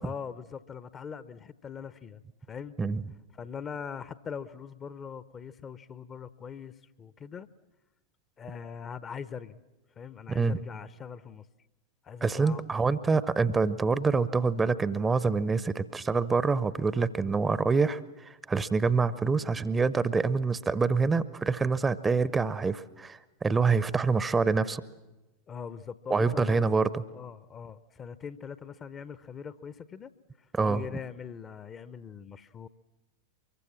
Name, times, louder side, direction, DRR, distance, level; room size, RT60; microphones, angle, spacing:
voice 1, 0.0-2.2 2.5-2.8 3.3-7.5 8.4-9.6 10.0-11.5 12.0-12.7 25.5-26.7 27.1-30.1 30.6-32.7, left 7 dB, 25° left, 16 dB, 0.7 m, -41 dB
voice 2, 12.2-24.8 26.1-26.9 30.5-30.8, right 4 dB, 15° right, 17 dB, 0.7 m, -26 dB
24.0 x 23.0 x 7.4 m, 1.1 s
figure-of-eight pair, 90°, 0 cm